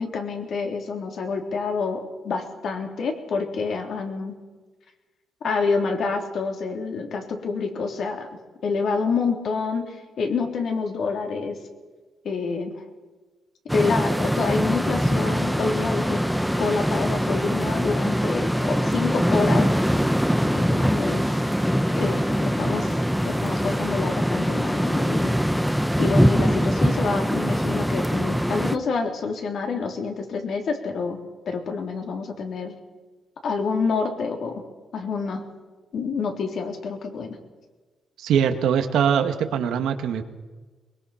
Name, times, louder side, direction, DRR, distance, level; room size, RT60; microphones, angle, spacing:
voice 1, 0.0-4.4 5.4-8.3 8.6-11.6 12.2-12.7 13.7-16.2 16.6-19.7 20.6-21.3 21.9-25.4 26.0-31.2 31.5-32.8 33.4-34.6 34.9-35.4 35.9-37.4, left 4 dB, 60° left, 3 dB, 3.6 m, -27 dB
sound 1, 13.7-28.8, equal, ahead, 0.8 m, -23 dB
voice 2, 38.2-40.2, right 8 dB, 90° right, 7 dB, 1.8 m, -22 dB
22.5 x 22.0 x 5.9 m, 1.3 s
cardioid pair, 135°, 0 cm